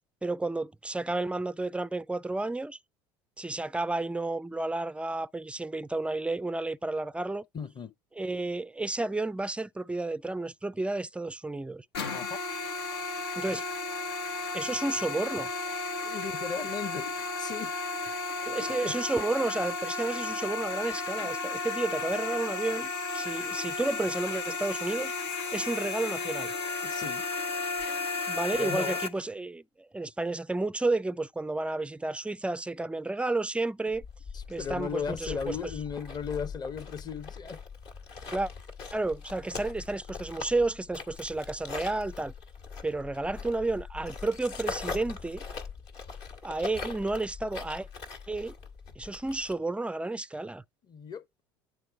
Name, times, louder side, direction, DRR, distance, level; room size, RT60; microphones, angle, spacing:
voice 1, 0.2-2.8 3.4-7.4 8.2-11.8 13.4-13.6 14.5-15.5 18.5-25.1 25.5-26.5 28.3-34.0 34.5-35.6 38.3-38.5 38.9-42.3 42.8-45.4 46.4-47.9 48.3-48.5 49.0-50.6, right 2 dB, 10° right, 0.4 m, -31 dB
voice 2, 7.5-7.9 12.1-12.4 13.5-13.6 16.0-18.1 18.4-19.0 26.8-27.2 28.5-29.0 34.3-37.6 50.9-51.2, left 6 dB, 30° left, 1.0 m, -37 dB
sound 1, 11.9-29.1, left 3 dB, 80° left, 1.0 m, -33 dB
sound 2, 33.9-49.5, left 4 dB, 60° left, 1.9 m, -41 dB
9.3 x 3.9 x 4.7 m
hypercardioid pair, 70°, 13 cm